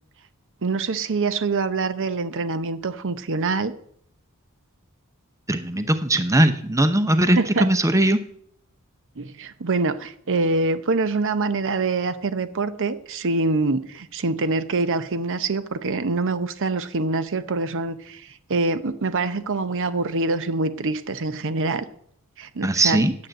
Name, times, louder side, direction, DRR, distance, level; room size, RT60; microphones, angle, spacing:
voice 1, 0.6-3.7 7.4-7.7 9.2-21.9 22.4-23.0, right 3 dB, 60° right, 13 dB, 0.7 m, -25 dB
voice 2, 5.5-8.2 22.6-23.1, right 1 dB, 15° right, 11 dB, 0.6 m, -19 dB
9.3 x 7.4 x 7.6 m, 0.68 s
head